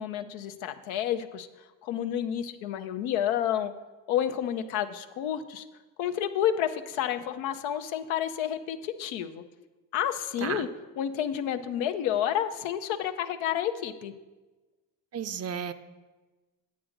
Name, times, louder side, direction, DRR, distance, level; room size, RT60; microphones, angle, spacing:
voice 1, 0.0-1.5 1.8-3.7 4.1-5.6 6.0-9.4 9.9-10.7 11.0-14.1, left 10 dB, 85° left, 9 dB, 0.7 m, -30 dB
voice 2, 15.1-15.7, right 7 dB, 35° right, 12 dB, 0.4 m, -33 dB
9.4 x 7.9 x 3.8 m, 1.2 s
supercardioid pair, 75°, 45 cm